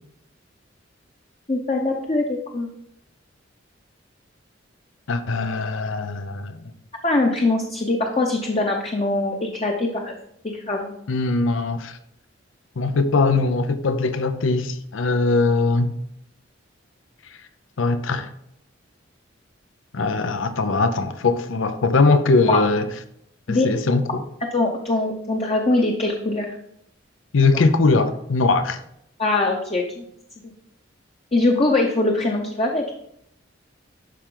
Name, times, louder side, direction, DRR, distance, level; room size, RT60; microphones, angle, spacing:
voice 1, 1.5-2.7 7.0-10.1 10.4-11.0 22.5-22.6 23.5-23.7 24.5-26.5 29.2-30.0 31.3-32.8, left 2 dB, 35° left, 0.8 m, -22 dB
voice 2, 5.1-6.6 11.1-11.9 12.8-15.9 17.8-18.3 19.9-22.9 23.5-24.2 27.3-28.8, left 3 dB, 90° left, 0.6 m, -21 dB
11.5 x 4.4 x 3.8 m
head